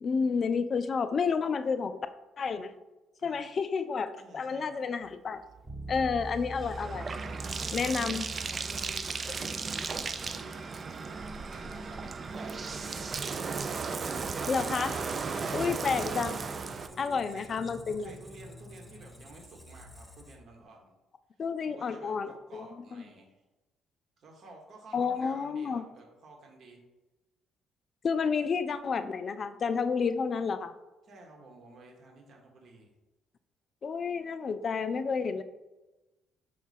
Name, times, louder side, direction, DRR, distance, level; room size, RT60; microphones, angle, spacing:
voice 1, 0.0-2.0 2.4-2.7 3.2-5.4 5.9-7.1 7.7-8.2 14.5-15.0 15.5-16.4 17.0-18.2 21.4-23.0 24.9-25.8 28.0-30.7 33.8-35.4, left 5 dB, 50° left, 11 dB, 0.3 m, -30 dB
voice 2, 4.2-4.8 6.0-6.1 7.4-8.2 8.5-11.2 11.5-13.2 16.8-17.6 18.0-20.9 21.6-23.4 24.2-26.8 31.0-32.9, right 2 dB, 60° right, 0 dB, 1.1 m, -52 dB
Bathtub (filling or washing), 5.5-16.9, right 4 dB, 40° right, 0.3 m, -36 dB
Bass guitar, 5.6-15.4, right 1 dB, 20° right, 1.0 m, -46 dB
Squeak, 12.8-20.6, left 1 dB, 5° left, 0.7 m, -51 dB
5.0 x 2.3 x 4.1 m, 1.1 s
supercardioid pair, 60°, 0 cm